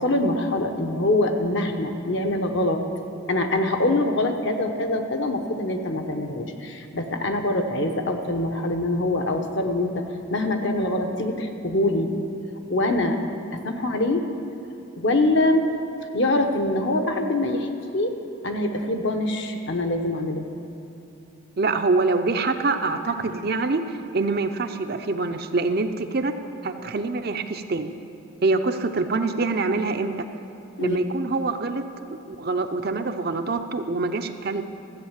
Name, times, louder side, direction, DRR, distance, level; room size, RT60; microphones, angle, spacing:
voice 1, 0.0-2.8 3.3-10.0 10.3-12.1 12.7-13.2 13.6-14.3 15.0-15.7 16.1-18.1 18.4-20.5 30.8-31.0, left 1 dB, 55° left, 5 dB, 1.0 m, -24 dB
voice 2, 21.6-26.3 26.6-27.9 28.4-30.3 30.8-31.8 32.1-34.6, right 3 dB, 45° right, 7 dB, 0.6 m, -25 dB
14.0 x 8.2 x 7.3 m, 2.7 s
head